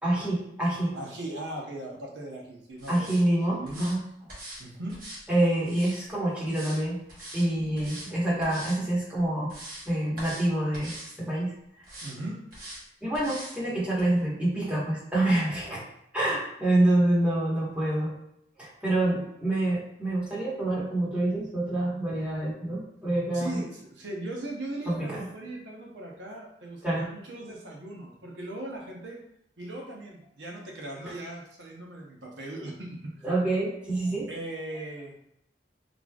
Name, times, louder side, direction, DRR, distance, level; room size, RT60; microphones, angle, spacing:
voice 1, 0.0-0.9 2.9-4.0 5.3-7.0 7.3-9.5 9.9-11.5 13.0-15.8 16.1-18.1 18.6-23.6 24.9-25.3 26.8-27.0 33.2-34.3, right 1 dB, 5° right, -8 dB, 1.4 m, -27 dB
voice 2, 0.9-3.2 3.5-3.9 4.6-5.0 12.0-12.4 23.3-29.2 29.6-33.3 34.3-35.1, right 1 dB, 90° right, -1 dB, 0.8 m, -38 dB
sound 1, 2.8-3.2 3.7-4.0 4.3-4.6 4.9-6.0 6.5-6.8 7.1-7.5 7.8-8.1 8.4-8.8 9.2-9.9 10.2-10.5 10.7-11.2 11.8-12.1 12.5-12.8 13.1-13.6 14.0-14.1, right 1 dB, 55° right, 1.3 m, -42 dB
4.0 x 3.1 x 2.4 m, 0.75 s
head